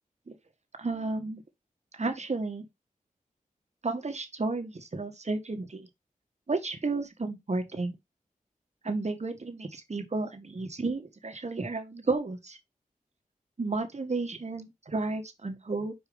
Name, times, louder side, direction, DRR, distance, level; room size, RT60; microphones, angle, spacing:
voice 1, 0.8-1.4 1.9-2.7 3.8-5.9 6.5-8.0 8.8-12.6 13.6-15.9, right 3 dB, 50° right, 1.6 m, -32 dB
5.2 x 4.7 x 5.3 m
wide cardioid pair, 60°, 15 cm